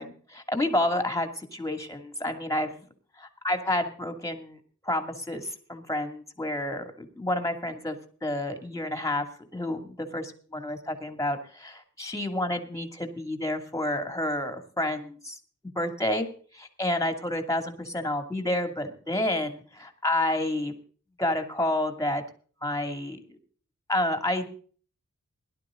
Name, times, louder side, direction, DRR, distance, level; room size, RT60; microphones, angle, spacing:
voice 1, 0.0-2.8 3.4-4.6 4.8-9.2 9.5-15.4 15.8-16.3 16.5-20.7 21.2-22.2 22.6-23.2 23.9-24.5, left 1 dB, 10° left, 6 dB, 2.6 m, -29 dB
17.5 x 11.5 x 3.8 m, 0.42 s
wide cardioid pair, 55°, 31 cm